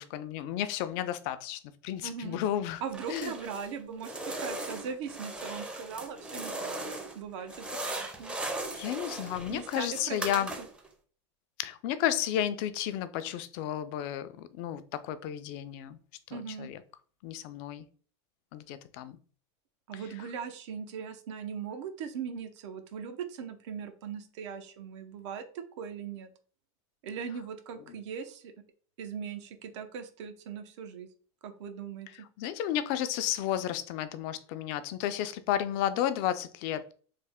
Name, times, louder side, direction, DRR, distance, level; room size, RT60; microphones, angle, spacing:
voice 1, 0.0-2.8 3.1-3.3 8.7-10.5 11.6-16.0 16.3-16.8 17.2-17.8 18.5-19.2 19.9-20.3 27.9-28.0 32.4-36.9, left 11 dB, 55° left, 0.4 m, -32 dB
voice 2, 2.0-2.4 2.8-8.4 9.5-10.7 16.3-16.7 19.9-26.3 27.0-28.5 29.0-31.1 31.4-32.3, right 7 dB, 75° right, 0.7 m, -40 dB
sound 1, 2.9-3.7 4.0-7.2 7.5-10.9, right 2 dB, 5° right, 0.5 m, -38 dB
3.3 x 2.1 x 3.5 m
supercardioid pair, 130°, 15 cm